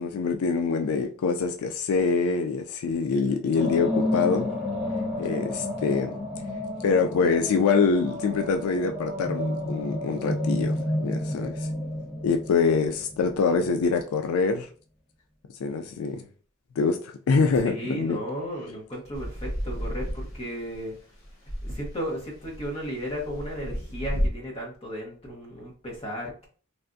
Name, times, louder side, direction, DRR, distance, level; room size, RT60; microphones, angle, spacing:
voice 1, 0.0-4.5 5.2-6.1 6.8-11.7 12.2-14.7 15.6-16.2 16.8-17.0 17.3-18.2, left 5 dB, 90° left, 0.3 m, -25 dB
sound 1, 3.5-13.7, left 1 dB, ahead, 1.1 m, -31 dB
voice 2, 17.6-20.9 21.6-26.5, equal, 30° left, 1.0 m, -35 dB
sound 2, 19.1-20.9 21.2-24.3, equal, 65° left, 1.0 m, -32 dB
3.4 x 2.4 x 2.5 m
head